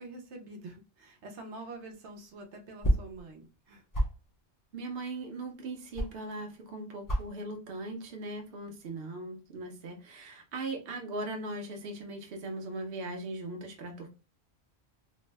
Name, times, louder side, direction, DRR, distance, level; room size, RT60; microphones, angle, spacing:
voice 1, 0.0-3.8, right 2 dB, 90° right, 1.0 m, -46 dB
sound 1, 1.8-6.7 7.0-7.4 7.6-8.2 8.5-9.0, equal, 25° left, 0.4 m, -32 dB
voice 2, 4.7-14.1, right 2 dB, 65° right, 0.9 m, -39 dB
2.6 x 2.0 x 3.2 m
omnidirectional pair, 1.1 m